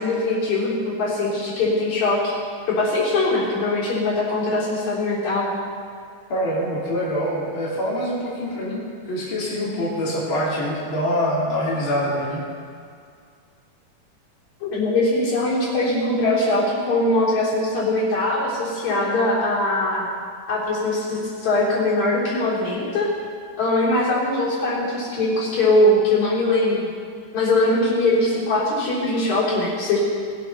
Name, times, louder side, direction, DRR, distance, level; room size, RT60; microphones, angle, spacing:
voice 1, 0.0-2.3 2.7-5.5 14.6-20.1 20.5-23.1 23.6-26.8 27.3-30.0, left 2 dB, 65° left, -7 dB, 4.9 m, -21 dB
voice 2, 6.3-8.8 9.1-12.4, equal, 40° left, -7 dB, 3.7 m, -25 dB
21.0 x 8.3 x 5.7 m, 2.2 s
omnidirectional pair, 3.6 m